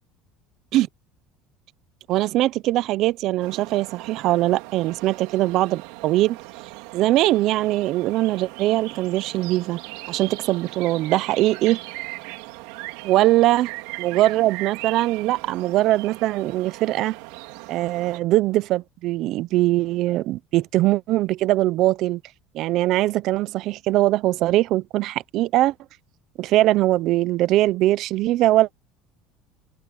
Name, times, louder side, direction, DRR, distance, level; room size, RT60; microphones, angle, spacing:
voice 1, 2.1-6.4 6.9-9.8 10.1-11.8 13.0-13.7 14.0-17.2 17.7-22.2 22.5-25.7 26.4-28.7, right 16 dB, 60° right, 0.7 m, -21 dB
sound 1, 3.4-18.2, right 22 dB, 80° right, 3.2 m, -39 dB
open air
cardioid pair, 125°, 0 cm